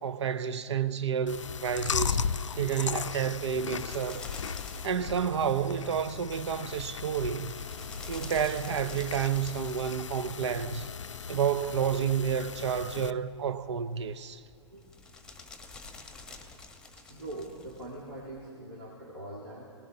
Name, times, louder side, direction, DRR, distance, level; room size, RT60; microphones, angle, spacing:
voice 1, 0.0-2.3 2.6-4.3 4.8-7.6 8.1-10.9 11.3-14.4, right 8 dB, 65° right, 0.7 m, -30 dB
Chewing mastication, 1.3-13.1, left 6 dB, 80° left, 0.5 m, -36 dB
sound 1, 3.4-18.5, left 3 dB, 5° left, 1.1 m, -50 dB
voice 2, 14.6-15.1 17.0-19.8, right 1 dB, 80° right, 3.3 m, -43 dB
24.0 x 19.0 x 2.7 m
figure-of-eight pair, 115°, 16 cm